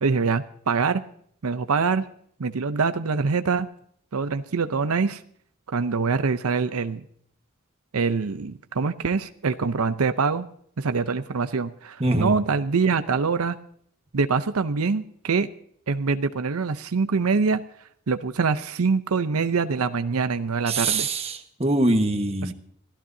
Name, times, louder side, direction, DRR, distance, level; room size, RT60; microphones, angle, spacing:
voice 1, 0.0-1.0 1.4-2.1 2.4-3.7 4.1-5.2 5.7-7.0 7.9-10.5 10.8-13.6 14.1-15.5 15.9-17.6 18.1-21.1 22.4-22.5, right 4 dB, 90° right, 11 dB, 0.7 m, -24 dB
voice 2, 12.0-12.3 20.7-22.5, right 2 dB, 30° right, 6 dB, 1.3 m, -23 dB
25.5 x 14.0 x 2.7 m, 0.62 s
head